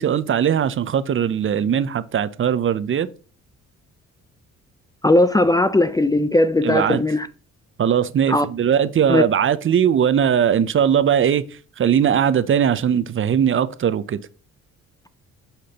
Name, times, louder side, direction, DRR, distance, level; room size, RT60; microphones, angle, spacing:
voice 1, 0.0-3.1 6.6-7.0 7.8-11.5 11.8-14.2, right 8 dB, 45° right, 0.6 m, -19 dB
voice 2, 5.0-7.3 8.3-8.5 9.1-9.2, left 1 dB, 15° left, 0.4 m, -18 dB
8.3 x 5.9 x 2.9 m
cardioid pair, 90°, 30 cm